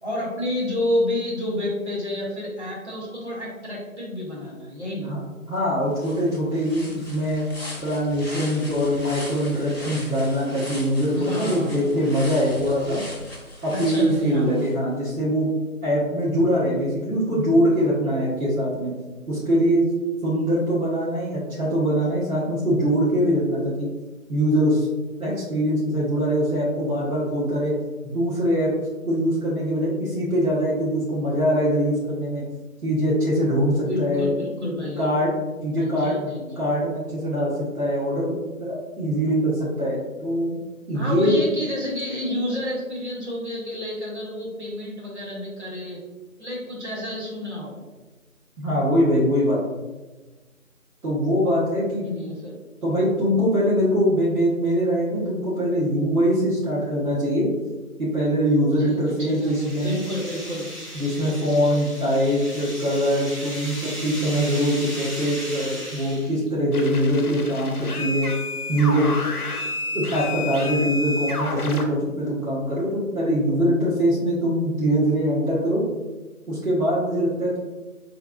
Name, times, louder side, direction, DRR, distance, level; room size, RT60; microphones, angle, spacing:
voice 1, 0.0-5.1 11.1-12.1 13.7-14.7 33.7-35.0 35.8-36.5 40.9-46.0 46.4-47.8 52.0-52.6 58.8-60.7, left 1 dB, 50° right, -5 dB, 1.3 m, -29 dB
voice 2, 5.5-7.5 7.8-13.0 13.6-15.5 15.8-18.9 19.3-19.8 20.2-23.9 24.3-24.9 25.2-27.7 28.0-28.7 29.1-32.4 32.8-34.3 35.0-35.3 35.6-36.1 36.5-38.3 38.6-40.6 40.9-41.4 48.6-49.6 51.0-52.1 52.8-57.5 58.0-60.0 60.9-68.3 68.7-69.1 69.9-75.8 76.5-77.6, equal, 75° right, -8 dB, 1.5 m, -22 dB
sound 1, 5.6-5.7 6.0-14.7, left 1 dB, 45° left, 0.8 m, -39 dB
sound 2, 58.7-66.5, equal, ahead, 0.6 m, -37 dB
sound 3, 66.7-71.8, left 3 dB, 85° left, 0.7 m, -30 dB
3.7 x 3.5 x 2.5 m, 1.2 s
figure-of-eight pair, 175°, 43 cm